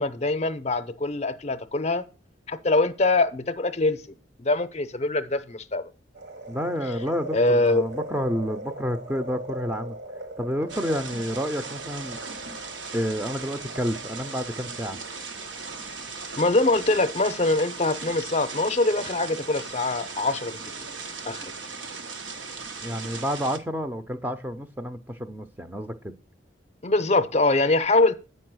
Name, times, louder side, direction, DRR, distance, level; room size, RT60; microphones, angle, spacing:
voice 1, 0.0-2.0 2.5-4.0 4.4-5.8 7.3-7.9 16.3-20.9 21.2-21.5 26.8-28.1, left 2 dB, 35° left, 0.6 m, -23 dB
sound 1, 6.1-16.4 16.8-16.9, right 1 dB, 65° right, 1.5 m, -40 dB
voice 2, 6.5-10.0 10.4-12.2 12.9-15.0 22.8-26.1, equal, 10° right, 0.5 m, -29 dB
sound 2, 10.7-23.6, right 4 dB, 85° right, 1.1 m, -38 dB
8.4 x 5.5 x 6.1 m
head